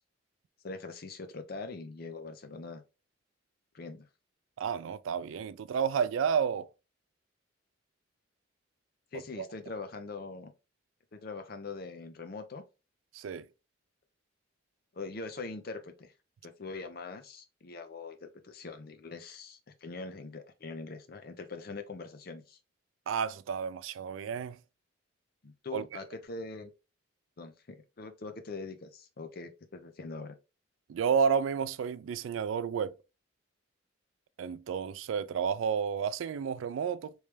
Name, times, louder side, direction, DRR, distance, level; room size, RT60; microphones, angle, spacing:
voice 1, 0.6-2.8 3.7-4.1 9.1-10.5 11.1-12.6 14.9-16.1 16.4-22.6 25.4-26.7 27.4-27.5 28.0-30.4, left 3 dB, 50° left, 0.6 m, -42 dB
voice 2, 4.6-6.7 9.4-9.5 13.1-13.5 23.1-24.6 25.7-25.8 30.9-33.0 34.4-37.1, right 7 dB, 85° right, 0.3 m, -31 dB
3.1 x 3.1 x 3.3 m
head